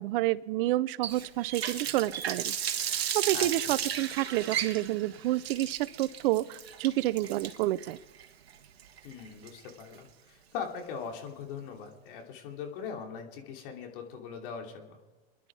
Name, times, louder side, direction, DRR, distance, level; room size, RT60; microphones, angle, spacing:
voice 1, 0.0-2.5 2.8-8.0, right 16 dB, 60° right, 19 dB, 0.7 m, -29 dB
Water tap faucet, 1.0-9.9, right 9 dB, 80° right, 1.3 m, -35 dB
voice 2, 3.3-3.7 9.0-15.0, left 6 dB, 60° left, 2 dB, 3.1 m, -41 dB
27.5 x 11.0 x 4.8 m, 1.2 s
hypercardioid pair, 110°, 31 cm